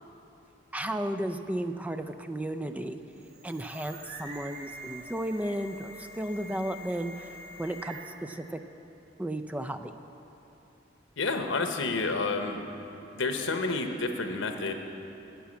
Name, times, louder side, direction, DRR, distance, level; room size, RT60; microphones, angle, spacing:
voice 1, 0.7-3.0 3.4-7.3 7.6-8.6 9.2-10.0, right 1 dB, 10° right, 8 dB, 0.4 m, -34 dB
sound 1, 3.0-8.3, right 1 dB, 60° right, 1.9 m, -45 dB
voice 2, 11.2-12.6 13.1-14.7, left 3 dB, 85° left, 5 dB, 1.0 m, -29 dB
11.5 x 7.1 x 8.6 m, 3.0 s
head